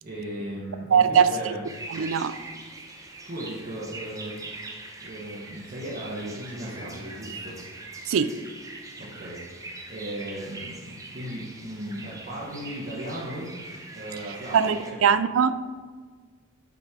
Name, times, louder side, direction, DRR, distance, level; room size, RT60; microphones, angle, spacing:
voice 1, 0.0-1.6 2.9-3.0 3.3-4.5 5.0-7.6 9.0-9.4 9.9-13.5 13.9-14.6 14.9-15.0, right 1 dB, 40° right, -7 dB, 1.2 m, -36 dB
voice 2, 0.9-1.5 1.9-2.3 8.1-8.3 14.5-15.7, right 7 dB, 65° right, 13 dB, 0.4 m, -21 dB
sound 1, 1.6-14.9, right 2 dB, 15° right, 0.7 m, -42 dB
5.7 x 5.3 x 4.8 m, 1.5 s
head